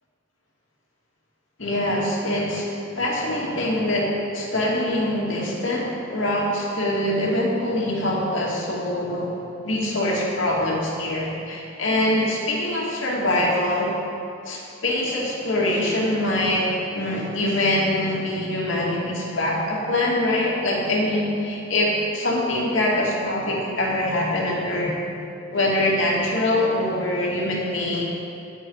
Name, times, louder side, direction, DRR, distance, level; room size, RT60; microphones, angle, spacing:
voice 1, 1.6-2.7 2.9-9.3 9.6-13.9 14.4-25.0 25.5-28.0, left 1 dB, 65° left, -3 dB, 2.5 m, -24 dB
20.5 x 7.7 x 4.9 m, 2.7 s
head